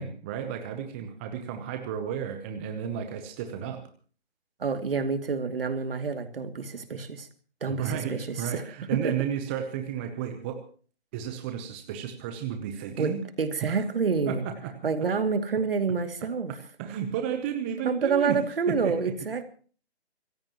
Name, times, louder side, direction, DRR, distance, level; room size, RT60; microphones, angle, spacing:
voice 1, 0.0-3.8 7.7-10.6 11.1-13.2 13.6-13.8 14.3-14.7 16.8-18.4 18.7-19.0, right 9 dB, 10° right, 6 dB, 0.8 m, -33 dB
voice 2, 4.6-7.3 7.6-8.3 8.5-8.6 9.0-9.1 13.0-14.4 14.8-16.5 17.8-19.4, right 5 dB, 55° right, 8 dB, 2.6 m, -28 dB
26.0 x 15.5 x 3.0 m, 0.41 s
figure-of-eight pair, 155°, 33 cm